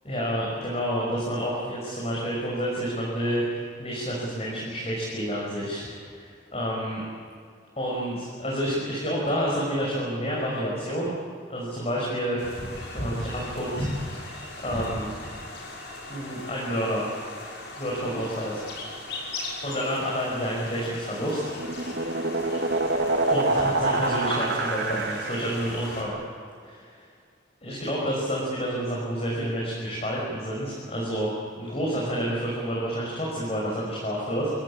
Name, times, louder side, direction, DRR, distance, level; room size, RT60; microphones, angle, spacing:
voice 1, 0.0-7.0 7.8-11.1 11.5-12.4 12.9-15.1 16.1-17.1 17.8-18.6 19.6-21.4 23.3-26.1 26.6-26.9 27.6-34.5, equal, 35° left, -5 dB, 5.9 m, -29 dB
sound 1, 12.4-26.0, left 2 dB, 65° left, 6.3 m, -38 dB
sound 2, 20.9-25.7, right 2 dB, 65° right, 1.9 m, -26 dB
28.0 x 16.5 x 8.7 m, 2.2 s
head